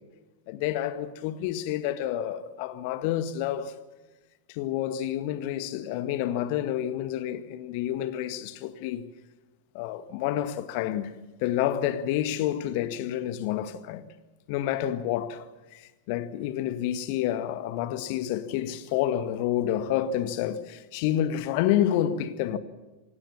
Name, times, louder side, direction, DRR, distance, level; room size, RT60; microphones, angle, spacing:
voice 1, 0.5-3.8 4.5-9.0 9.7-11.1 11.4-14.1 14.5-15.5 15.7-22.6, left 11 dB, 45° left, 1.8 m, -29 dB
27.5 x 18.0 x 7.2 m
figure-of-eight pair, 90°, 0 cm